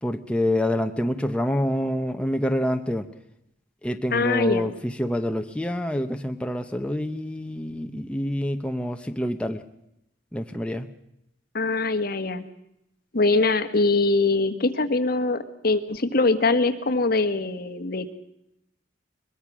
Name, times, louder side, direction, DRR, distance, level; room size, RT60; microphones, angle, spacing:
voice 1, 0.0-3.1 3.8-9.6 10.3-10.9, left 1 dB, 5° left, 6 dB, 0.8 m, -27 dB
voice 2, 4.1-4.7 11.5-12.4 13.1-18.1, left 3 dB, 55° left, 8 dB, 1.5 m, -23 dB
22.0 x 21.5 x 6.1 m, 0.81 s
head